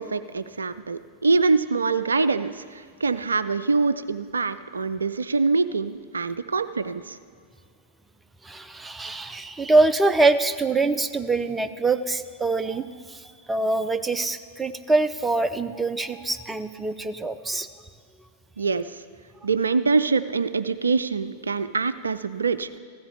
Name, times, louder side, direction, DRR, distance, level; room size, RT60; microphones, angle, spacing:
voice 1, 0.0-7.2 18.6-19.0 19.4-22.7, right 4 dB, 75° right, 14 dB, 0.3 m, -24 dB
voice 2, 8.4-13.2 13.5-17.7, right 3 dB, 10° right, 12 dB, 0.5 m, -24 dB
15.0 x 13.5 x 3.5 m, 2.3 s
figure-of-eight pair, 90°, 0 cm